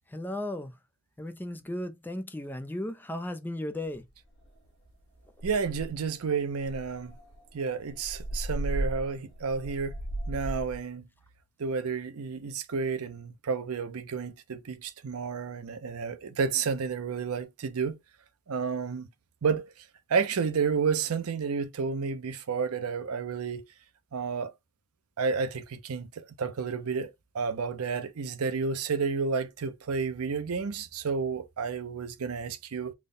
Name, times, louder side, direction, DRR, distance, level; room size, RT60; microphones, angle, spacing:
voice 1, 0.1-0.7 1.2-4.0, left 1 dB, 10° left, 0.4 m, -35 dB
sound 1, 4.4-4.7 5.0-5.1 5.4-6.1 6.6-10.8, right 1 dB, 60° left, 1.1 m, -35 dB
voice 2, 5.4-7.1 7.5-9.9 10.3-11.0 11.6-18.0 18.5-19.1 19.4-19.7 20.1-23.6 24.1-24.5 25.2-27.1 27.3-32.9, right 5 dB, 90° right, 0.5 m, -31 dB
3.5 x 2.1 x 3.6 m
head